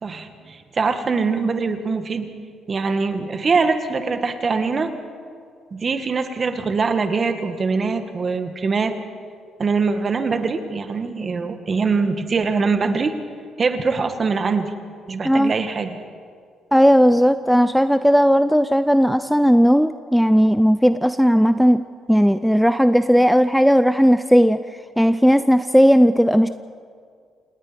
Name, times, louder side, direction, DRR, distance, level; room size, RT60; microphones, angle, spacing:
voice 1, 0.0-2.3 2.7-4.9 5.7-8.9 9.6-13.1 13.6-14.7 15.1-16.0, right 4 dB, 40° right, 7 dB, 1.9 m, -23 dB
voice 2, 16.7-21.8 22.1-24.6 25.0-26.5, equal, ahead, 11 dB, 0.5 m, -16 dB
28.0 x 18.5 x 5.3 m, 2.1 s
cardioid pair, 90°, 0 cm